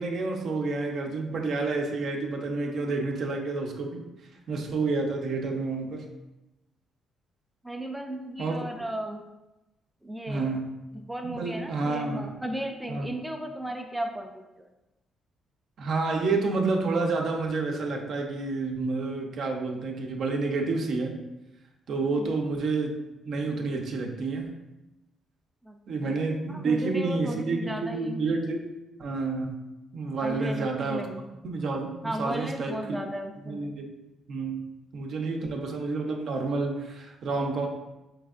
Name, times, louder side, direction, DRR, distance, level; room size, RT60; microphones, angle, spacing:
voice 1, 0.0-4.0 4.5-6.1 8.4-8.6 10.3-10.7 11.2-12.3 12.9-13.1 15.8-21.2 21.9-23.0 23.2-24.5 25.9-28.6 29.0-29.6 29.9-31.1 31.4-33.0 33.5-33.8 34.3-37.7, right 3 dB, 65° right, 2 dB, 0.6 m, -29 dB
voice 2, 7.6-9.3 10.0-10.6 10.9-14.7 22.2-22.4 25.6-26.2 26.5-28.2 30.2-31.2 32.0-33.7, right 1 dB, 5° right, 3 dB, 0.3 m, -35 dB
4.3 x 3.2 x 2.4 m, 0.99 s
cardioid pair, 90°, 0 cm